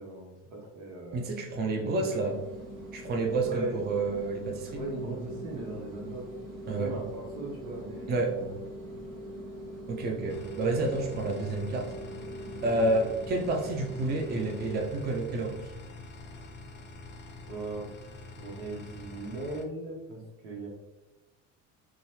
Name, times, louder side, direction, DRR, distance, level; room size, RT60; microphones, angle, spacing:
voice 1, 0.0-1.3 1.7-2.3 3.4-3.8 4.7-6.3 6.7-8.5 12.6-12.7 17.5-17.9 18.4-20.7, right 2 dB, 80° right, -1 dB, 1.0 m, -39 dB
voice 2, 1.1-2.3 2.9-4.8 6.7-6.9 8.1-8.3 9.9-11.9 12.6-15.6, right 2 dB, 25° right, 2 dB, 0.5 m, -29 dB
sound 1, 2.2-14.8, equal, 65° right, 1.5 m, -42 dB
sound 2, 10.3-19.6, left 2 dB, 30° left, 0.5 m, -46 dB
2.6 x 2.3 x 3.1 m, 0.95 s
hypercardioid pair, 85°, 38 cm